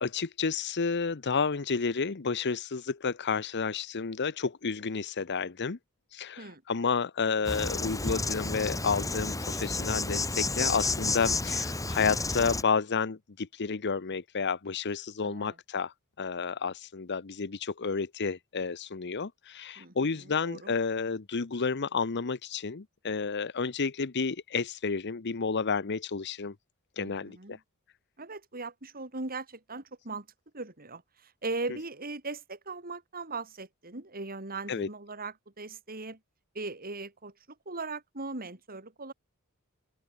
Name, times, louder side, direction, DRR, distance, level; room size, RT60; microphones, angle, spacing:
voice 1, 0.0-5.8 6.1-26.5 27.0-27.6 34.7-34.9, left 5 dB, 50° left, 0.8 m, -31 dB
Insect, 7.4-12.6, left 3 dB, 15° left, 3.3 m, -31 dB
voice 2, 15.2-15.6 19.8-20.7 27.0-27.6 28.2-30.3 30.5-36.2 36.5-37.3 37.7-39.1, right 3 dB, 45° right, 4.1 m, -39 dB
open air
head